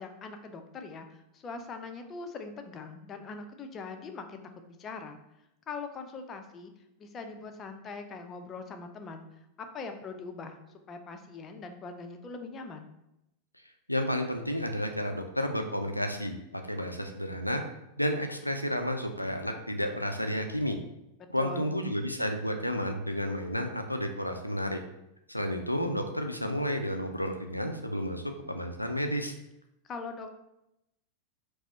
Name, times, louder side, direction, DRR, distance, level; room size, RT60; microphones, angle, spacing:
voice 1, 0.0-5.2 5.7-6.7 7.0-9.3 9.6-10.6 10.9-12.9 21.4-21.8 29.8-30.3, left 4 dB, 25° left, 6 dB, 0.5 m, -42 dB
voice 2, 13.9-17.6 18.0-20.8 21.3-24.8 25.3-29.3, equal, 90° left, 5 dB, 0.4 m, -31 dB
4.9 x 2.0 x 4.2 m, 0.86 s
figure-of-eight pair, 90°, 0 cm